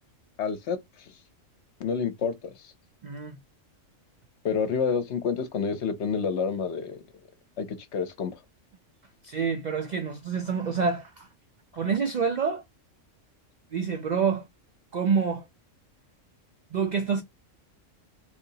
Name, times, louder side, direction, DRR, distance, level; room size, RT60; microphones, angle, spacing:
voice 1, 0.4-1.1 1.8-2.5 4.4-7.0 7.6-8.4, left 6 dB, 65° left, 0.9 m, -29 dB
voice 2, 3.0-3.4 9.2-11.3 11.7-12.6 13.7-14.5 14.9-15.4 16.7-17.2, right 6 dB, 90° right, 0.3 m, -27 dB
3.0 x 2.8 x 3.9 m
omnidirectional pair, 1.3 m